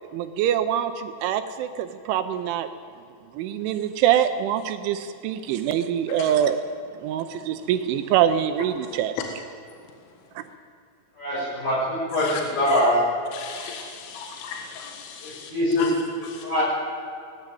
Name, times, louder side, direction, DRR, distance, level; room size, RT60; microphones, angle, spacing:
voice 1, 0.1-2.7 3.3-6.6 7.0-9.1 10.4-10.5, right 10 dB, 80° right, 9 dB, 2.9 m, -24 dB
voice 2, 11.2-13.0 15.2-15.9 16.4-16.6, left 1 dB, 45° left, -9 dB, 8.7 m, -23 dB
voice 3, 13.3-15.5 15.8-15.9 16.2-16.5, left 7 dB, 75° left, 3 dB, 3.9 m, -35 dB
20.0 x 14.5 x 9.1 m, 2.5 s
omnidirectional pair, 6.0 m